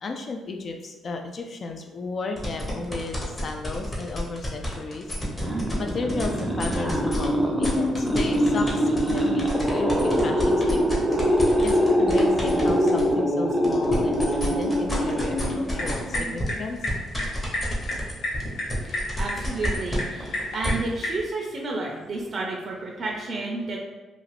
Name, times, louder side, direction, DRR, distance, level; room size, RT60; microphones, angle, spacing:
voice 1, 0.0-5.1 5.4-16.8, left 3 dB, 50° left, 3 dB, 0.3 m, -34 dB
sound 1, 2.4-7.2 7.6-13.1 13.5-20.7, equal, 25° left, 0.9 m, -32 dB
sound 2, 5.2-16.3, equal, ahead, 0.6 m, -23 dB
sound 3, 15.6-21.2, left 1 dB, 85° left, 0.8 m, -33 dB
voice 2, 18.7-23.8, right 3 dB, 45° right, -1 dB, 0.4 m, -31 dB
2.5 x 2.4 x 3.2 m, 1.2 s
cardioid pair, 90°, 0 cm